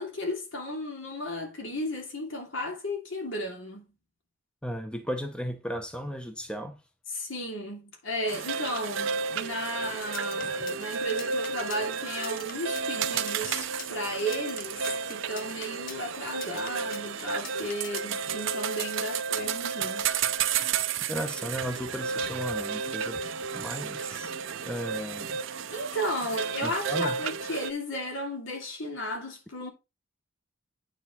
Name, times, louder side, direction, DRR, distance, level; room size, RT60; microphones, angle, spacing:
voice 1, 0.0-3.9 7.1-20.1 25.7-29.7, equal, 75° left, 2.7 m, -34 dB
voice 2, 4.6-6.8 10.4-10.5 21.1-24.3 24.6-25.4 26.6-27.2, equal, 5° left, 0.8 m, -35 dB
sound 1, 8.3-27.7, right 6 dB, 75° right, 0.7 m, -32 dB
sound 2, 9.9-18.2, left 5 dB, 45° left, 1.4 m, -43 dB
9.2 x 4.5 x 4.3 m
head